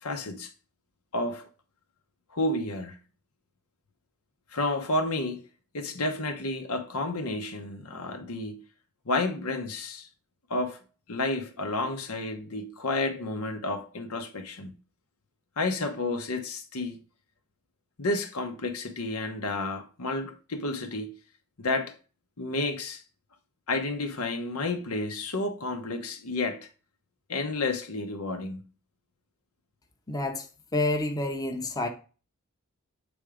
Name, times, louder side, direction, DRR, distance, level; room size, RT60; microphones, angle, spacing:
voice 1, 0.0-0.5 1.1-1.5 2.3-3.0 4.5-5.5 5.7-8.6 9.1-10.1 10.5-10.8 11.1-14.7 15.6-17.0 18.0-21.1 21.6-21.9 22.4-23.0 23.7-26.7 27.3-28.6, left 2 dB, 85° left, 1.1 m, -31 dB
voice 2, 30.1-30.4 30.7-31.9, left 2 dB, 15° left, 0.8 m, -28 dB
8.1 x 3.6 x 5.0 m
head